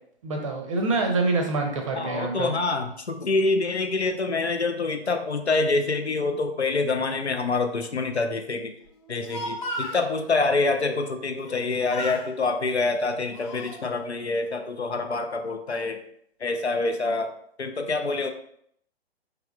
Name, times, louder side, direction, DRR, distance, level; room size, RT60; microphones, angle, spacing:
voice 1, 0.2-2.5, right 3 dB, 30° right, 4 dB, 0.6 m, -26 dB
voice 2, 2.0-8.7 9.1-16.0 16.4-18.3, left 3 dB, 85° left, 6 dB, 0.6 m, -26 dB
Speech, 9.0-10.1 11.4-11.6 11.9-12.3 13.0-13.8, equal, 25° left, 0.6 m, -34 dB
4.7 x 3.3 x 2.3 m, 0.69 s
figure-of-eight pair, 125°, 32 cm